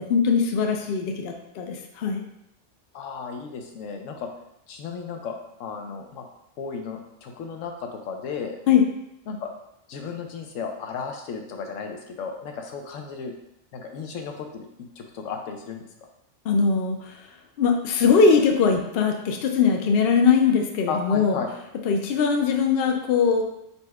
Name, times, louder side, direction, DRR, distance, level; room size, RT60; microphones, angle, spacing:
voice 1, 0.0-2.2 8.7-8.9 16.4-17.2 17.6-21.4 21.8-23.4, left 5 dB, 60° left, 3 dB, 0.7 m, -21 dB
voice 2, 2.9-4.3 4.7-5.3 5.6-6.2 6.6-8.6 9.3-9.5 9.9-13.3 13.7-14.7 15.0-15.8 20.9-21.5, left 5 dB, 85° left, 3 dB, 1.0 m, -34 dB
4.1 x 2.2 x 4.6 m, 0.81 s
omnidirectional pair, 1.3 m